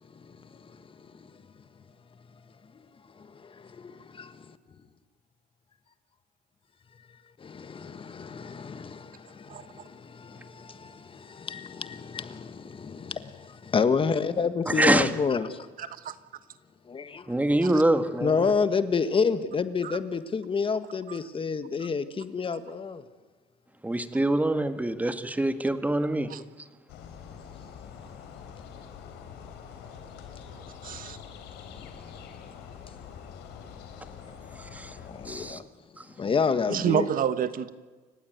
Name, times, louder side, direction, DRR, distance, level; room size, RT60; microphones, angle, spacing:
voice 1, 0.2-1.1 3.2-4.6 7.4-15.7 16.9-17.3 18.2-23.0 35.1-35.6 36.2-37.1, left 5 dB, 30° left, 1.5 m, -29 dB
voice 2, 14.7-15.1 17.3-18.5 23.8-26.3 34.6-35.0 35.3-35.6 36.0-36.1, right 1 dB, 10° right, 1.8 m, -25 dB
voice 3, 15.8-16.1 17.7-17.8 19.8-19.9 21.1-21.2 26.3-26.4 30.8-31.2 36.7-37.7, right 9 dB, 55° right, 1.4 m, -28 dB
sound 1, 26.9-35.5, left 7 dB, 85° left, 3.8 m, -45 dB
29.5 x 16.0 x 9.4 m
cardioid pair, 110°, 17 cm